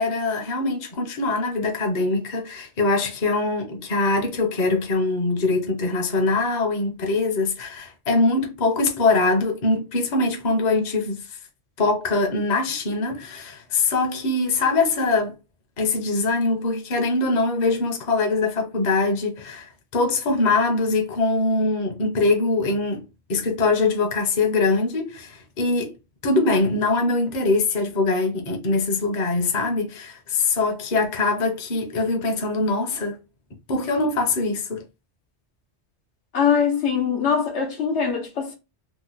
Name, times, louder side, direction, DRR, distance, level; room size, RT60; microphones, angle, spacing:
voice 1, 0.0-11.3 11.8-15.4 15.8-25.9 26.2-33.2 33.7-34.8, left 3 dB, 45° left, 0.8 m, -23 dB
voice 2, 36.3-38.5, left 6 dB, 85° left, 1.2 m, -22 dB
3.0 x 2.1 x 3.8 m
omnidirectional pair, 1.1 m